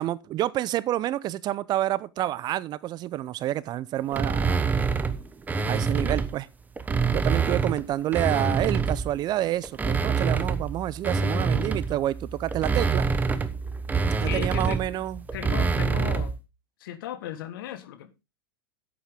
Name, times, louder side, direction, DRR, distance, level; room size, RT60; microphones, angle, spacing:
voice 1, 0.0-4.6 5.7-6.5 7.1-13.1 14.2-15.2, right 13 dB, 35° right, 0.6 m, -28 dB
sound 1, 4.1-6.3 6.8-9.2 9.6-16.4, right 5 dB, 15° right, 1.0 m, -26 dB
voice 2, 14.2-14.8 15.3-16.4 16.8-18.2, left 11 dB, 65° left, 1.6 m, -36 dB
11.0 x 8.3 x 3.6 m
hypercardioid pair, 100°, 12 cm